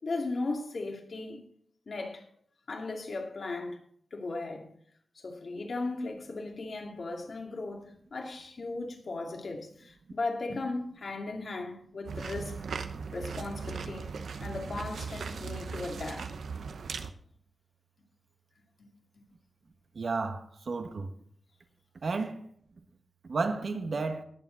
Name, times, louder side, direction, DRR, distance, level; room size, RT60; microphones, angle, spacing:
voice 1, 0.0-1.4 1.9-2.2 2.7-3.8 4.1-4.7 5.2-12.7 13.1-14.1 14.4-16.3 18.8-18.9, left 3 dB, 60° left, 2.4 m, -37 dB
sound 1, 12.1-17.1, right 5 dB, 85° right, 0.9 m, -38 dB
voice 2, 19.9-21.1 22.0-22.4 23.3-24.2, right 4 dB, 60° right, 1.5 m, -32 dB
19.5 x 7.3 x 4.0 m
wide cardioid pair, 95°, 0 cm